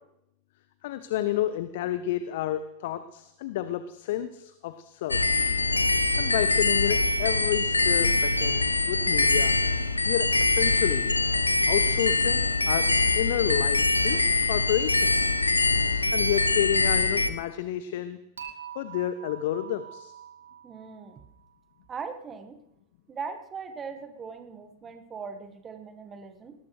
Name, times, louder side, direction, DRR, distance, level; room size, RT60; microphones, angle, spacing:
voice 1, 0.8-5.2 6.2-9.6 10.1-11.2 11.7-12.9 13.1-14.2 14.5-15.4 16.1-18.2 18.7-20.1, left 12 dB, 55° left, 12 dB, 0.7 m, -30 dB
sound 1, 5.1-17.3, left 3 dB, 80° left, 0.9 m, -23 dB
Dishes pots and pans / Chink clink, 18.4-21.5, right 9 dB, 70° right, 2.0 m, -44 dB
voice 2, 20.6-21.2 21.9-22.6 23.1-26.5, right 5 dB, 20° right, 7 dB, 1.5 m, -39 dB
20.0 x 18.0 x 3.2 m, 0.85 s
figure-of-eight pair, 90°, 0 cm